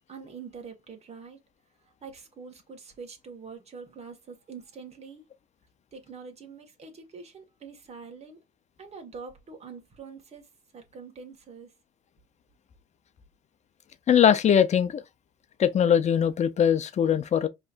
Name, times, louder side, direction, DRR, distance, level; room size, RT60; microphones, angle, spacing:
voice 1, 0.1-1.4 1.9-5.3 5.9-8.4 8.8-11.7, right 5 dB, 40° right, 2.0 m, -45 dB
voice 2, 14.1-15.0 15.6-17.5, left 8 dB, 40° left, 0.8 m, -21 dB
5.4 x 3.4 x 2.6 m
cardioid pair, 110°, 17 cm